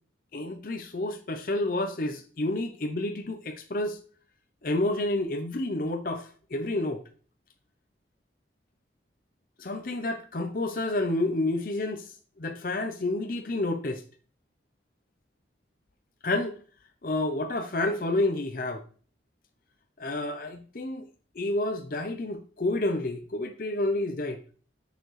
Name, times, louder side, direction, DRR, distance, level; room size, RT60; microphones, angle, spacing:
voice 1, 0.3-4.0 4.6-7.0 9.6-14.0 16.2-16.6 17.0-18.8 20.0-21.1 21.4-24.4, left 2 dB, 50° left, 0.7 m, -29 dB
6.7 x 6.5 x 3.2 m
head